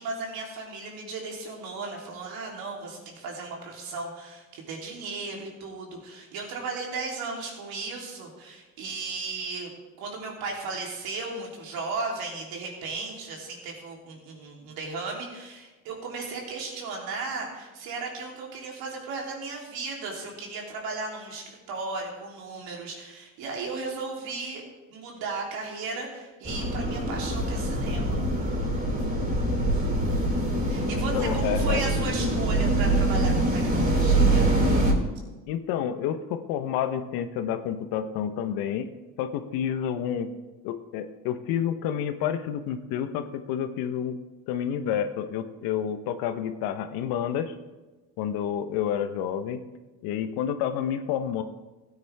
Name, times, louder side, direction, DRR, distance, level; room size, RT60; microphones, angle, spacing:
voice 1, 0.0-9.7 10.0-24.6 24.9-28.2 30.6-34.5, right 3 dB, 75° right, -1 dB, 3.3 m, -35 dB
sound 1, 26.4-34.9, right 1 dB, 25° right, 3.5 m, -24 dB
voice 2, 31.1-31.8 35.5-38.9 39.2-40.3 40.6-44.2 44.5-47.5 48.2-49.6 50.0-51.4, left 9 dB, 75° left, 10 dB, 1.0 m, -29 dB
16.0 x 9.4 x 3.5 m, 1.2 s
supercardioid pair, 75°, 37 cm